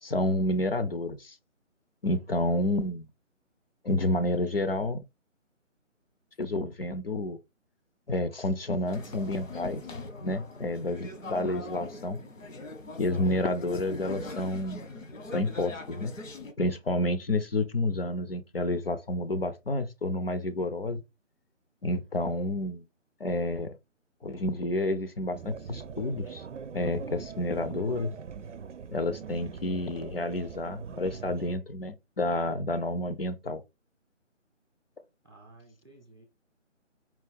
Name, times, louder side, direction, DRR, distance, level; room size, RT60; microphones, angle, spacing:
voice 1, 0.0-1.4 2.0-3.1 3.8-5.0 6.4-7.4 8.1-9.8 10.2-12.2 13.0-14.9 15.3-16.1 16.6-21.0 21.8-22.8 23.2-23.8 24.2-26.4 26.7-28.1 28.9-33.6, left 2 dB, 50° left, 0.5 m, -30 dB
sound 1, 8.9-16.5, left 2 dB, 80° left, 1.2 m, -41 dB
sound 2, 25.3-31.6, right 6 dB, 70° right, 0.6 m, -42 dB
voice 2, 35.2-36.3, right 2 dB, 20° right, 0.5 m, -54 dB
4.5 x 2.2 x 3.4 m
figure-of-eight pair, 160°, 38 cm